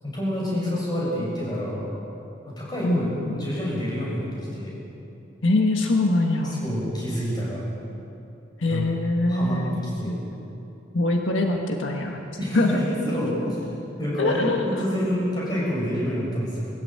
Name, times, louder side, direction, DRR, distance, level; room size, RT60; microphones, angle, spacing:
voice 1, 0.0-1.9 2.4-4.7 6.6-7.6 8.7-8.8 9.3-10.1 12.4-13.7 14.0-16.7, equal, 20° left, -5 dB, 6.8 m, -28 dB
voice 2, 2.8-3.5 5.4-6.5 8.6-9.7 10.0-10.2 10.9-12.2 12.5-12.8 14.2-14.8, left 2 dB, 75° left, 2 dB, 1.6 m, -23 dB
21.5 x 14.0 x 9.0 m, 2.8 s
head